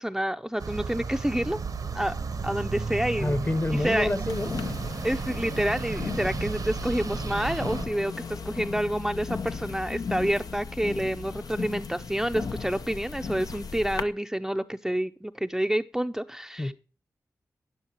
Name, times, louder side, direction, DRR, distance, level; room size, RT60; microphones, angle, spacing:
voice 1, 0.0-1.6 1.9-2.1 2.4-3.4 3.7-4.1 5.0-16.7, right 1 dB, 5° right, 0.5 m, -28 dB
sound 1, 0.6-7.9, right 4 dB, 80° right, 1.0 m, -33 dB
voice 2, 3.2-4.7 16.6-16.7, left 2 dB, 35° left, 1.1 m, -28 dB
sound 2, 4.3-14.0, left 5 dB, 80° left, 0.8 m, -36 dB
12.0 x 9.3 x 2.9 m
cardioid pair, 45°, 6 cm